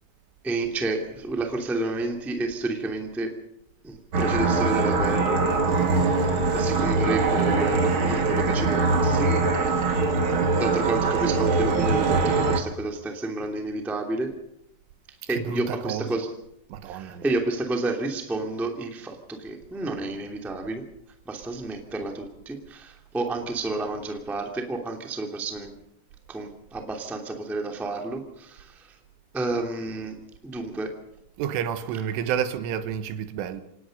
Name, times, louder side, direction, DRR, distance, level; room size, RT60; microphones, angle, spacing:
voice 1, 0.4-3.3 3.8-5.4 5.9-6.0 6.5-9.4 10.6-14.3 15.1-16.3 16.8-20.8 21.2-25.7 26.3-29.0 29.3-31.0, right 2 dB, ahead, 1.1 m, -30 dB
sound 1, 4.1-12.6, right 3 dB, 60° right, 1.3 m, -22 dB
voice 2, 15.3-16.1 16.7-17.4 31.4-33.6, right 9 dB, 80° right, 3.8 m, -30 dB
27.5 x 18.5 x 5.4 m
omnidirectional pair, 5.6 m